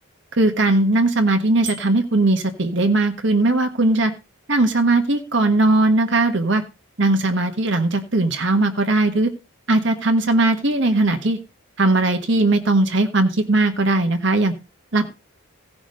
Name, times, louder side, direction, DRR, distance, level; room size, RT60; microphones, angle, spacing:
voice 1, 0.3-4.1 4.5-6.6 7.0-9.3 9.7-11.4 11.8-14.5 14.9-15.1, right 2 dB, 55° right, 6 dB, 1.3 m, -19 dB
Bicycle bell, 1.6-2.3, right 3 dB, 35° right, 2.4 m, -36 dB
16.0 x 6.0 x 5.2 m, 0.29 s
head